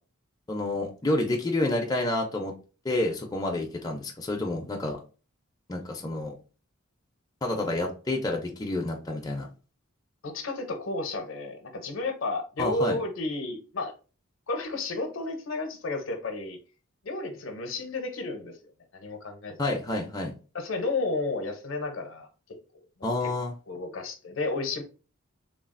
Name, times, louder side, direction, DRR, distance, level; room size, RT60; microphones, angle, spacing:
voice 1, 0.5-2.5 2.8-5.0 5.7-6.3 7.4-9.5 12.6-13.0 19.6-20.3 23.0-23.5, left 2 dB, 20° left, 0.4 m, -29 dB
voice 2, 10.2-13.9 14.5-16.6 17.0-18.6 18.9-19.6 20.5-22.6 23.0-23.1 23.7-24.8, left 2 dB, 65° left, 0.6 m, -32 dB
3.2 x 2.3 x 2.4 m
head